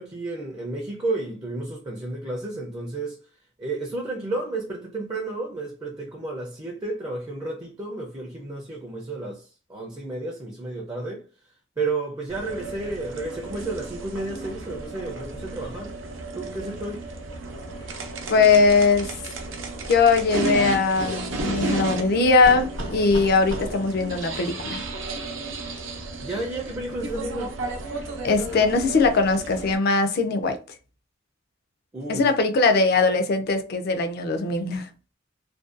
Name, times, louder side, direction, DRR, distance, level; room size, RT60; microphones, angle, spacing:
voice 1, 0.0-3.2 3.6-11.2 11.8-15.9 16.3-17.1 26.2-27.6 31.9-32.2, right 2 dB, 20° right, 0.4 m, -32 dB
sound 1, 12.3-29.8, right 2 dB, 70° right, 0.6 m, -33 dB
voice 2, 18.3-19.1 19.9-24.8 28.2-30.6 32.1-34.9, left 4 dB, 50° left, 0.4 m, -20 dB
2.5 x 2.2 x 2.4 m
head